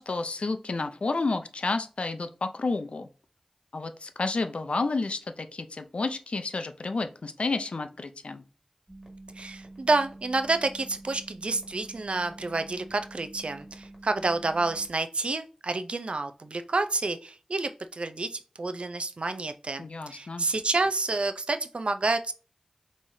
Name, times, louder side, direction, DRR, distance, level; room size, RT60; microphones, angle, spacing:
voice 1, 0.0-3.1 3.7-8.4 19.8-20.5, left 3 dB, 75° left, 8 dB, 0.5 m, -31 dB
sound 1, 8.9-14.9, right 2 dB, 30° right, 1.7 m, -47 dB
voice 2, 9.4-18.3 18.6-22.3, right 3 dB, 70° right, 9 dB, 0.4 m, -29 dB
5.5 x 3.1 x 2.6 m, 0.35 s
wide cardioid pair, 55°, 2 cm